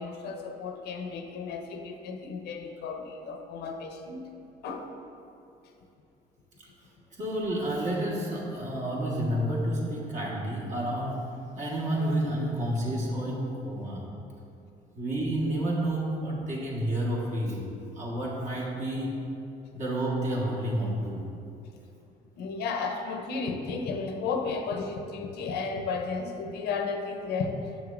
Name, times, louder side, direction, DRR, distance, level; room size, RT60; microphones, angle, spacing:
voice 1, 0.0-4.3 4.6-4.9 6.7-6.8 13.7-13.8 22.4-27.6, left 4 dB, 75° left, 4 dB, 0.7 m, -33 dB
voice 2, 7.1-11.2 11.5-14.0 14.9-17.6 17.9-19.2 19.7-21.2, right 1 dB, 45° right, -4 dB, 1.5 m, -30 dB
7.3 x 6.1 x 2.5 m, 2.7 s
cardioid pair, 110°, 17 cm